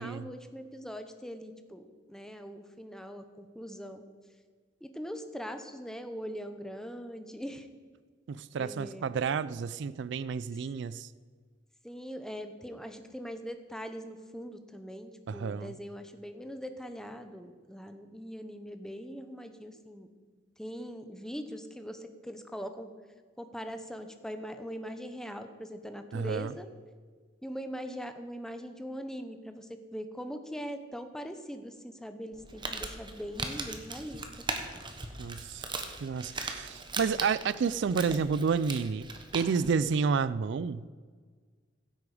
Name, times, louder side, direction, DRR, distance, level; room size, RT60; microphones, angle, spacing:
voice 1, 0.0-4.0 4.8-7.7 8.6-9.1 11.8-20.1 20.6-22.9 23.4-26.7 27.4-34.2, equal, 5° left, 8 dB, 0.8 m, -41 dB
voice 2, 8.3-11.1 15.3-15.7 26.1-26.5 35.2-35.6 36.0-39.1 39.3-40.9, right 5 dB, 65° right, 17 dB, 0.4 m, -30 dB
Crumpling crinkling, 32.3-39.7, right 3 dB, 25° right, 1.1 m, -39 dB
15.5 x 8.5 x 4.9 m, 1.5 s
head